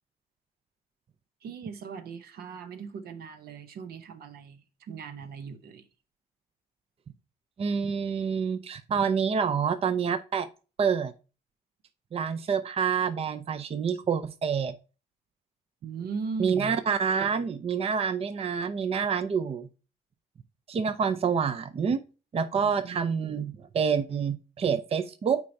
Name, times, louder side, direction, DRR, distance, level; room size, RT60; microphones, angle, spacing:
voice 1, 1.4-5.8 15.8-16.8 22.5-23.4, right 5 dB, 70° right, 0.9 m, -39 dB
voice 2, 7.6-10.5 10.8-11.1 12.1-14.7 16.4-19.7 20.7-22.0 22.3-25.4, right 6 dB, 40° right, 0.5 m, -27 dB
8.3 x 4.7 x 2.7 m
cardioid pair, 80°, 16 cm